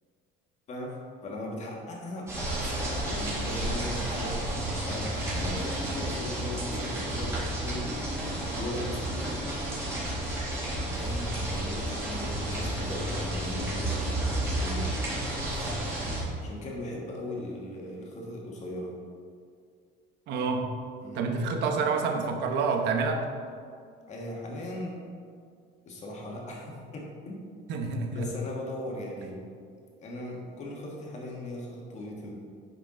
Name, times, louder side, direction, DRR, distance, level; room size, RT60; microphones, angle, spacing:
voice 1, 0.7-9.6 10.9-19.0 21.0-21.3 24.1-25.0 25.8-27.4 28.1-29.5 30.0-32.3, left 1 dB, 35° left, -2 dB, 1.7 m, -39 dB
sound 1, 2.3-16.2, right 1 dB, 15° right, 2.1 m, -31 dB
voice 2, 20.3-20.7 21.1-23.2 27.7-28.3, right 4 dB, 60° right, 3 dB, 1.1 m, -28 dB
9.7 x 6.7 x 3.9 m, 2.2 s
cardioid pair, 170°, 21 cm